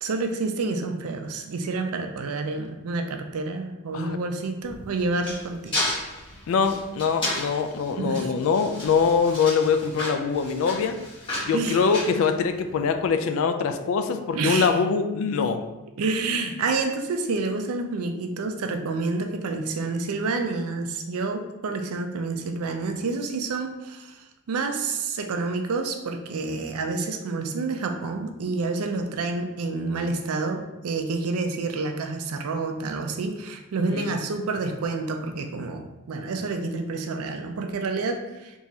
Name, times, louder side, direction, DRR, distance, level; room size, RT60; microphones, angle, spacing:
voice 1, 0.0-5.9 8.0-8.3 11.5-11.9 14.3-14.7 16.0-38.6, right 3 dB, 85° right, 5 dB, 0.4 m, -28 dB
sound 1, 4.6-12.9, left 1 dB, 20° left, 1.1 m, -33 dB
voice 2, 6.5-11.0 11.4-15.6 33.9-34.1, left 5 dB, 65° left, 8 dB, 0.3 m, -23 dB
3.6 x 2.9 x 2.7 m, 1.0 s
head